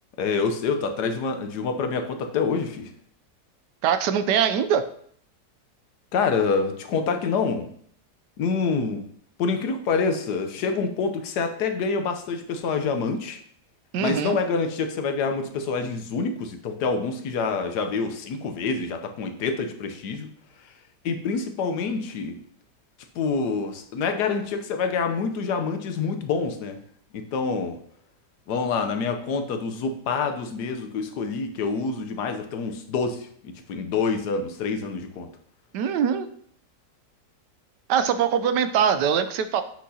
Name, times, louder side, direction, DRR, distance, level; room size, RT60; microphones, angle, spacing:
voice 1, 0.2-2.9 6.1-7.7 8.4-9.0 9.4-13.4 14.0-20.3 21.0-22.4 23.1-26.8 27.1-27.8 28.5-35.3, left 5 dB, 75° left, 7 dB, 1.3 m, -27 dB
voice 2, 3.8-4.9 13.9-14.4 35.7-36.3 37.9-39.6, right 8 dB, 80° right, 10 dB, 1.2 m, -22 dB
8.4 x 6.0 x 2.8 m, 0.62 s
omnidirectional pair, 1.8 m